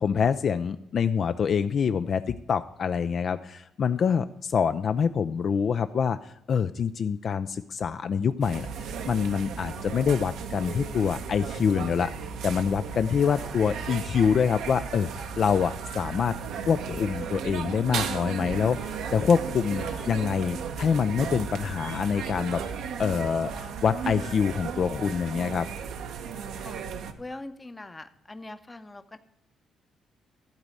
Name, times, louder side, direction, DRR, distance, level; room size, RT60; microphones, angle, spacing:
voice 1, 0.0-16.3 16.7-22.6 23.0-25.7, left 6 dB, 55° left, 11 dB, 0.3 m, -26 dB
sound 1, 8.4-27.1, right 6 dB, 80° right, 0.8 m, -35 dB
voice 2, 13.2-13.6 19.7-20.3 26.6-26.8 27.2-29.2, left 2 dB, 20° left, 10 dB, 0.7 m, -43 dB
12.0 x 4.0 x 7.6 m, 0.84 s
cardioid pair, 90°, 0 cm